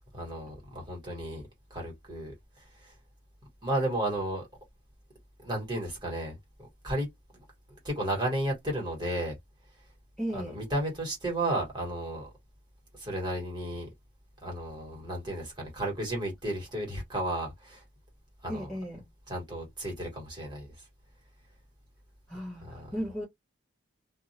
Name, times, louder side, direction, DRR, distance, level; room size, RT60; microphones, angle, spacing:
voice 1, 0.1-1.4 1.7-2.9 3.6-4.5 5.4-7.1 7.8-9.3 10.3-12.3 12.9-13.9 14.4-17.8 18.4-18.7 19.3-20.7 22.6-23.0, right 1 dB, 20° right, 1.3 m, -33 dB
voice 2, 10.2-10.6 18.5-19.1 22.3-23.2, equal, 5° left, 0.7 m, -35 dB
2.5 x 2.0 x 2.6 m
head